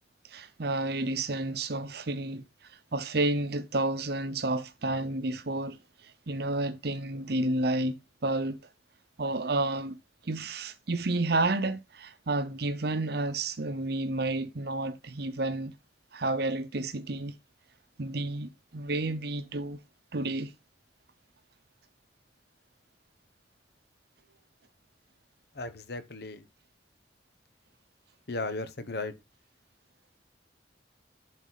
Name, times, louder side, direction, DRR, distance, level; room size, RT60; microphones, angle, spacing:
voice 1, 0.3-2.4 2.9-5.8 6.3-8.6 9.2-10.0 10.2-15.7 16.1-17.3 18.0-19.8 20.1-20.5, right 2 dB, 60° right, 0.8 m, -30 dB
voice 2, 25.5-26.4 28.3-29.1, left 3 dB, 60° left, 1.1 m, -35 dB
11.0 x 4.3 x 4.1 m
head